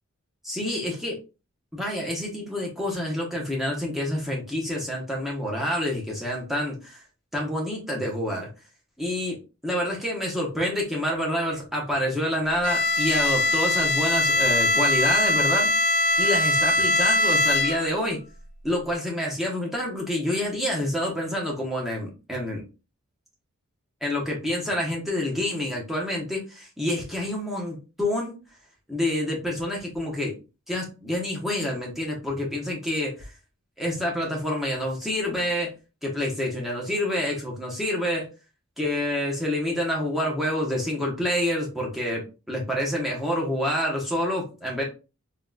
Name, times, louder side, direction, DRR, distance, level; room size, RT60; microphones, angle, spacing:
voice 1, 0.4-1.2 1.7-7.0 7.3-8.5 9.0-9.4 9.6-15.7 16.2-18.2 18.6-22.6 24.0-28.4 28.9-30.4 30.7-33.3 33.8-35.7 36.0-38.3 38.8-42.2 42.5-44.8, left 1 dB, ahead, -3 dB, 0.8 m, -27 dB
Bowed string instrument, 12.6-18.1, left 1 dB, 35° left, 0.3 m, -22 dB
3.7 x 2.3 x 2.2 m, 0.31 s
head